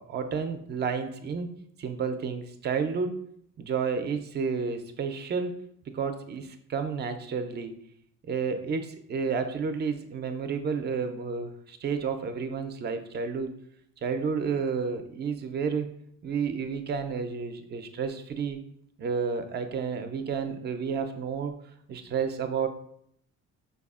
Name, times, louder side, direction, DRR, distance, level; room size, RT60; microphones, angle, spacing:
voice 1, 0.0-1.5 1.8-3.1 3.6-5.5 5.9-7.8 8.3-13.6 14.0-15.9 16.2-18.6 19.0-21.5 21.9-22.7, right 5 dB, 35° right, 8 dB, 0.4 m, -31 dB
4.8 x 2.3 x 2.3 m, 0.68 s
cardioid pair, 90°, 30 cm